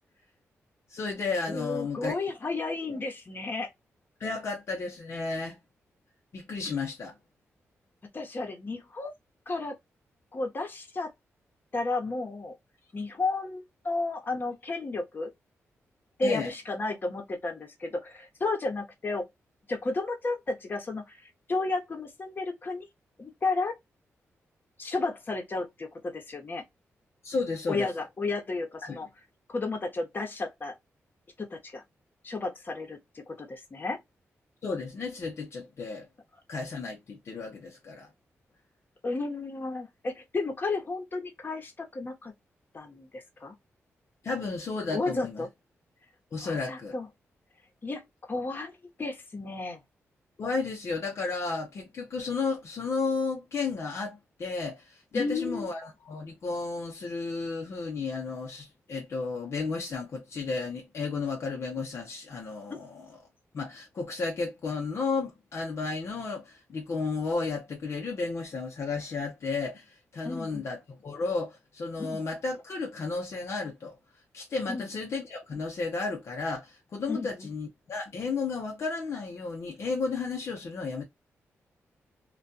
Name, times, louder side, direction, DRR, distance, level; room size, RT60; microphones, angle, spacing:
voice 1, 0.9-2.1 2.9-3.0 4.2-5.6 6.3-7.2 16.2-16.5 27.2-27.9 28.8-29.0 34.6-36.1 36.5-38.1 44.2-45.4 46.3-46.9 50.4-63.2 63.5-74.0 74.3-81.0, left 4 dB, 60° left, 0.7 m, -33 dB
voice 2, 1.5-3.7 8.1-9.1 9.5-9.8 10.3-11.1 11.7-12.5 12.9-15.3 16.2-19.2 19.7-22.9 23.2-23.8 24.8-26.6 27.7-29.1 29.5-30.7 31.4-31.8 32.2-34.0 39.0-42.3 42.7-43.5 44.9-45.5 46.4-47.1 47.8-48.7 49.0-49.8 55.1-55.7 62.7-62.8 70.2-70.7 72.0-72.2 74.7-74.9 77.1-77.5, left 3 dB, 40° left, 1.0 m, -33 dB
2.4 x 2.2 x 2.6 m
cardioid pair, 80°, 5 cm